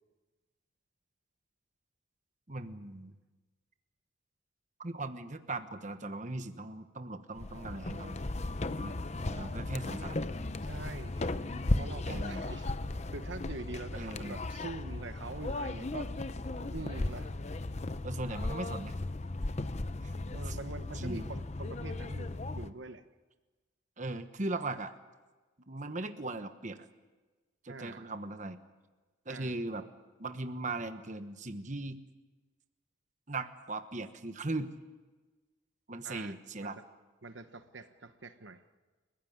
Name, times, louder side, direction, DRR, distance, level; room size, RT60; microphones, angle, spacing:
voice 1, 2.5-3.2 4.8-8.2 8.8-9.0 9.3-10.2 12.1-12.4 13.9-14.4 18.0-18.9 20.0-20.1 20.4-20.6 20.9-21.3 24.0-24.9 25.7-26.9 27.6-28.6 29.2-29.8 30.2-32.0 33.3-34.7 35.9-36.8, right 2 dB, 40° right, 8 dB, 1.2 m, -38 dB
sound 1, 7.3-22.7, left 2 dB, 35° left, 0.7 m, -36 dB
voice 2, 10.6-12.7 13.1-16.1 16.7-17.4 20.3-23.1 27.7-28.0 29.3-29.5 36.0-36.3 36.6-36.7 37.2-38.6, right 3 dB, 65° right, 9 dB, 1.0 m, -45 dB
28.5 x 15.5 x 9.5 m, 1.3 s
head